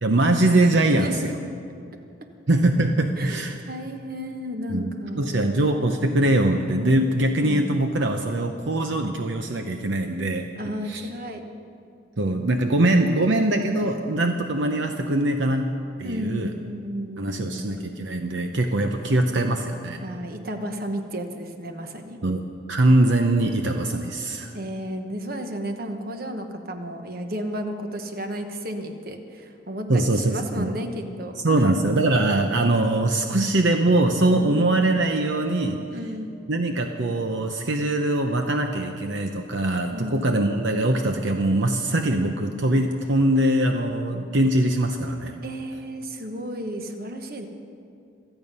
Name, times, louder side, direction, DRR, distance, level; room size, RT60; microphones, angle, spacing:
voice 1, 0.0-1.3 2.5-3.6 4.7-4.9 5.2-10.4 10.9-11.1 12.2-15.7 16.0-16.5 17.2-20.0 22.2-22.4 22.7-24.5 29.9-30.7 31.4-35.8 36.5-45.4, right 1 dB, 70° right, 5 dB, 0.8 m, -22 dB
voice 2, 3.2-5.9 7.4-7.8 10.6-11.4 16.0-17.7 20.0-22.2 24.5-31.8 34.3-34.6 35.9-36.3 39.9-40.3 45.4-47.5, equal, 50° right, 5 dB, 1.2 m, -33 dB
26.5 x 9.2 x 5.5 m, 2.4 s
head